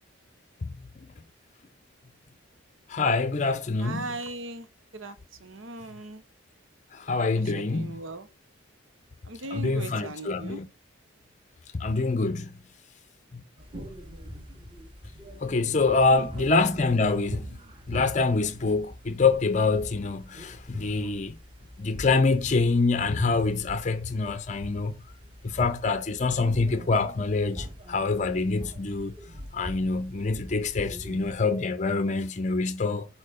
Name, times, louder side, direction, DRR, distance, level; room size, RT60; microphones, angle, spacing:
voice 1, 2.9-4.1 6.9-8.0 9.5-10.7 11.7-12.6 13.3-13.4 15.4-17.6 17.9-21.3 21.8-24.9 25.4-29.1 29.5-33.1, left 3 dB, 35° left, 0.5 m, -25 dB
voice 2, 3.8-4.7 4.9-6.2 7.5-8.3 9.3-10.6 16.1-16.4, right 2 dB, 75° right, 0.9 m, -38 dB
sound 1, 13.6-31.4, equal, 25° right, 1.6 m, -42 dB
6.5 x 4.4 x 5.0 m
head